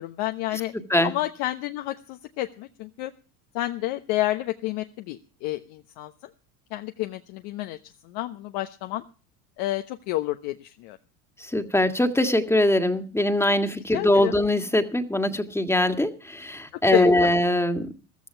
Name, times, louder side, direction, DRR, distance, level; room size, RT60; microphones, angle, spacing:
voice 1, 0.0-0.7 1.0-3.1 3.5-6.1 6.7-7.8 8.0-9.0 9.6-11.0 13.9-14.3 16.9-17.1, left 16 dB, 65° left, 7 dB, 1.2 m, -29 dB
voice 2, 11.4-17.9, left 1 dB, 5° left, 7 dB, 1.9 m, -22 dB
15.0 x 14.0 x 4.5 m, 0.36 s
hypercardioid pair, 95°, 44 cm